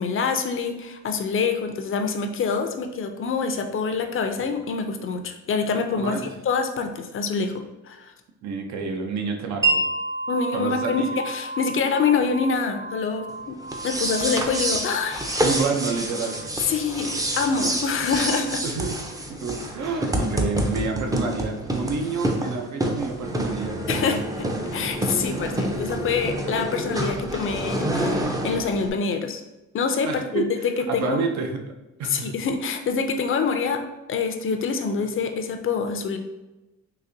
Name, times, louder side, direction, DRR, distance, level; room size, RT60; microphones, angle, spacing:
voice 1, 0.0-6.1 6.5-8.1 10.3-13.6 13.8-15.4 16.6-18.6 23.9-24.5 24.7-29.4 29.7-30.4 30.8-31.2 32.0-33.8 34.1-36.2, left 5 dB, 45° left, 6 dB, 0.5 m, -26 dB
voice 2, 5.9-6.3 8.4-9.8 10.5-11.1 15.4-16.4 18.6-19.0 19.3-24.3 30.0-31.6 32.0-32.3, right 4 dB, 65° right, 3 dB, 0.7 m, -29 dB
Wind chime, 9.6-17.3, right 2 dB, 40° right, 1.0 m, -31 dB
sound 1, 13.6-28.9, right 1 dB, 10° right, 0.5 m, -28 dB
4.0 x 2.8 x 2.6 m, 1.0 s
cardioid pair, 90°, 30 cm